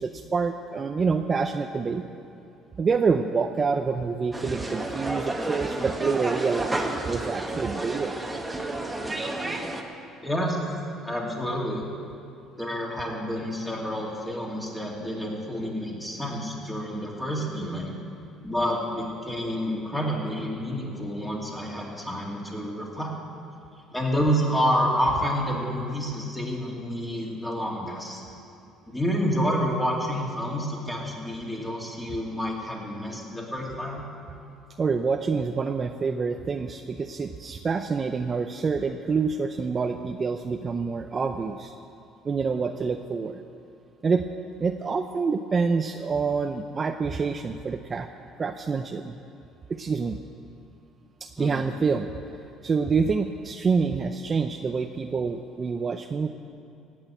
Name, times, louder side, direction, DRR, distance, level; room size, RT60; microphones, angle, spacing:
voice 1, 0.0-2.0 2.8-8.1 34.8-41.7 42.2-43.4 44.0-44.3 44.6-48.1 48.4-49.2 49.7-50.2 51.2-52.1 52.6-56.3, right 5 dB, 30° right, 6 dB, 0.5 m, -27 dB
sound 1, 4.3-9.8, right 2 dB, 10° right, 1.3 m, -31 dB
voice 2, 10.2-10.6 11.0-11.8 12.6-17.9 18.4-23.1 23.9-28.2 28.9-34.0 51.4-51.7, equal, 5° left, -2 dB, 2.5 m, -29 dB
17.0 x 6.2 x 8.8 m, 2.6 s
cardioid pair, 120°, 0 cm